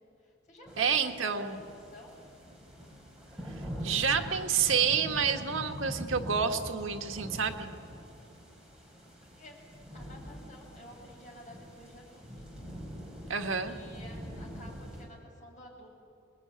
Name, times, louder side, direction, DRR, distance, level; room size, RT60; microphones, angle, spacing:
voice 1, 0.2-2.3 9.2-9.6 9.9-12.3 13.7-15.9, left 1 dB, 40° left, -2 dB, 7.6 m, -52 dB
sound 1, 0.7-15.0, equal, 5° right, 6.1 m, -44 dB
voice 2, 0.8-1.6 3.8-7.7 13.3-13.7, right 6 dB, 80° right, 5 dB, 1.7 m, -29 dB
27.0 x 20.5 x 9.7 m, 2.5 s
head